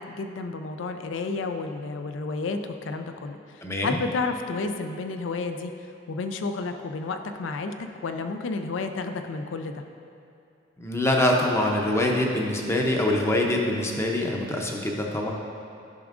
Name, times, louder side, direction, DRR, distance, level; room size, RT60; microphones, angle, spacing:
voice 1, 0.0-9.8, left 3 dB, 75° left, 7 dB, 0.4 m, -31 dB
voice 2, 3.6-4.0 10.8-15.3, left 1 dB, 15° left, 0 dB, 0.6 m, -24 dB
10.5 x 5.9 x 2.5 m, 2.6 s
head